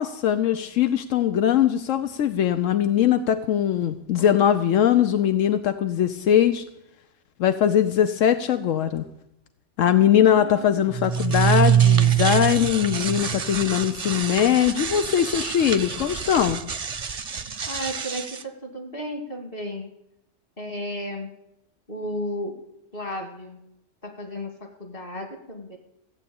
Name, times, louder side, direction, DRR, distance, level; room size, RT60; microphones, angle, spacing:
voice 1, 0.0-6.6 7.4-9.0 9.8-16.6, left 10 dB, 85° left, 9 dB, 1.1 m, -21 dB
voice 2, 10.3-10.8 17.7-19.9 20.6-21.3 21.9-22.6 22.9-23.6 24.0-25.8, equal, 45° left, 3 dB, 2.6 m, -33 dB
sound 1, 10.9-18.4, right 8 dB, 35° right, 0.7 m, -24 dB
15.5 x 7.9 x 8.7 m, 0.84 s
omnidirectional pair, 1.3 m